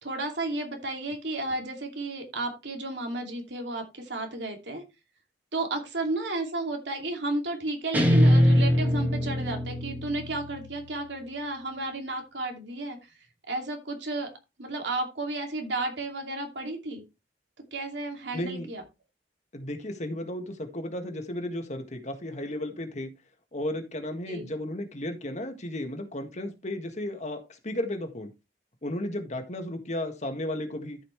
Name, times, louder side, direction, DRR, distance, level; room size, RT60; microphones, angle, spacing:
voice 1, 0.0-4.8 5.5-13.0 13.5-14.3 14.6-17.0 17.7-18.8 24.3-24.5, right 2 dB, 85° right, 3 dB, 2.7 m, -33 dB
Guitar, 7.9-11.1, equal, 10° right, 1.7 m, -23 dB
voice 2, 18.3-18.7 19.5-23.1 23.5-28.3 28.8-31.0, left 1 dB, 40° left, 6 dB, 1.7 m, -34 dB
13.5 x 5.7 x 3.3 m, 0.26 s
head